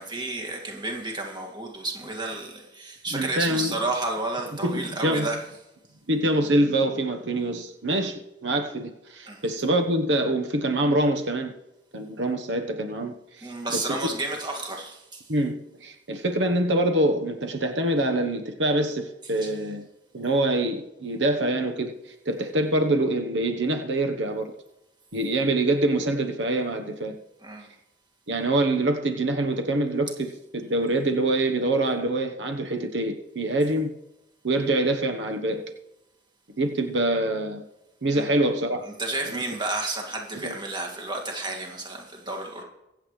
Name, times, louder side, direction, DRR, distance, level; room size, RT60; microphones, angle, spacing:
voice 1, 0.0-5.4 9.3-9.4 13.4-15.2 19.4-19.5 27.4-27.7 38.1-38.3 39.0-42.6, right 2 dB, 25° right, 2.1 m, -31 dB
voice 2, 3.1-3.8 4.6-5.3 6.1-11.5 11.9-14.0 15.3-19.9 20.1-24.5 25.1-27.2 28.3-33.9 34.4-35.6 36.6-37.6 38.0-38.9 39.2-39.4 40.4-40.5, right 1 dB, 80° right, 1.1 m, -25 dB
24.0 x 8.1 x 3.2 m
head